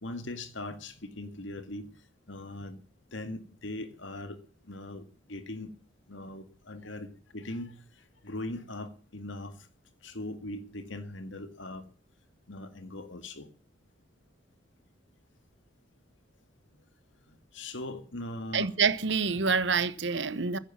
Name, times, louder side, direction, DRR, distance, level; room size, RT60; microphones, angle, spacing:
voice 1, 0.0-1.9 2.3-2.8 3.1-5.7 6.1-9.7 10.0-11.9 12.5-13.5 17.3-18.7, left 1 dB, 80° left, 1.9 m, -40 dB
voice 2, 18.5-20.6, right 5 dB, 70° right, 1.0 m, -27 dB
15.5 x 9.9 x 7.3 m
head